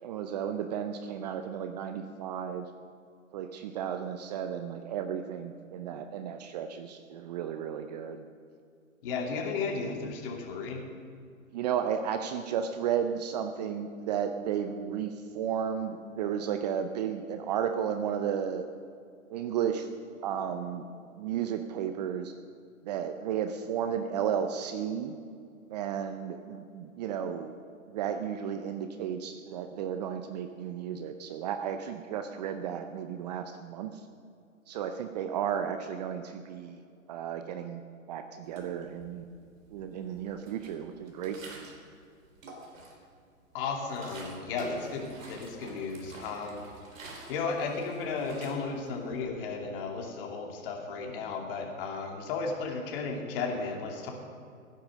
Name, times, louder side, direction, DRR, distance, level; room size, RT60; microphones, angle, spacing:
voice 1, 0.0-2.7 3.3-8.2 11.5-18.7 19.3-19.9 20.2-20.9 21.2-22.3 22.8-25.2 25.7-27.6 27.9-33.9 34.7-36.8 37.1-37.8 38.1-39.3 39.7-41.7, right 8 dB, 30° right, 8 dB, 0.6 m, -33 dB
voice 2, 9.0-10.8 43.5-46.6 47.3-54.1, left 4 dB, 40° left, 2 dB, 2.7 m, -34 dB
Water in bottle, 38.5-39.3 39.7-41.9 42.2-43.1 43.5-49.2, right 2 dB, 65° right, 3.9 m, -48 dB
16.0 x 10.0 x 6.5 m, 2.3 s
hypercardioid pair, 130°, 42 cm